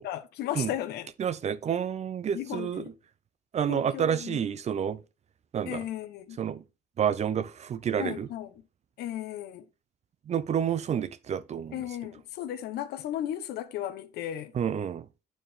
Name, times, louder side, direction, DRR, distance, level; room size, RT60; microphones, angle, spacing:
voice 1, 0.0-1.1 2.3-2.9 3.7-4.4 5.7-6.4 8.0-8.5 9.0-9.6 11.7-14.5, left 11 dB, 75° left, 1.0 m, -35 dB
voice 2, 1.2-2.8 3.5-5.0 5.5-5.8 6.4-6.6 7.0-8.3 10.3-11.8 14.5-15.0, right 8 dB, 40° right, 0.7 m, -29 dB
9.1 x 4.4 x 3.5 m
cardioid pair, 110°, 17 cm